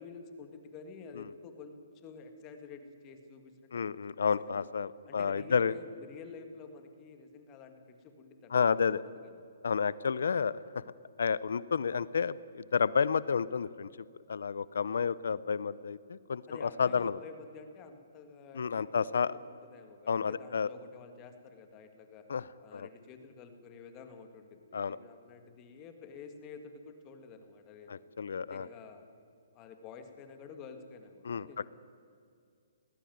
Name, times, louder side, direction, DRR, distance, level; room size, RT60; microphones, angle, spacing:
voice 1, 0.0-4.7 5.1-9.4 16.5-22.3 22.6-28.0 28.4-29.1 29.5-31.7, left 5 dB, 25° left, 7 dB, 2.0 m, -50 dB
voice 2, 3.7-5.7 8.5-9.0 9.6-10.8 11.2-13.9 14.3-17.2 18.6-19.3 20.1-20.7 22.3-22.4 22.7-22.9 24.7-25.0 27.9-28.7 31.2-31.5, left 6 dB, 75° left, 19 dB, 0.6 m, -30 dB
18.5 x 16.5 x 9.4 m, 2.2 s
hypercardioid pair, 150°, 0 cm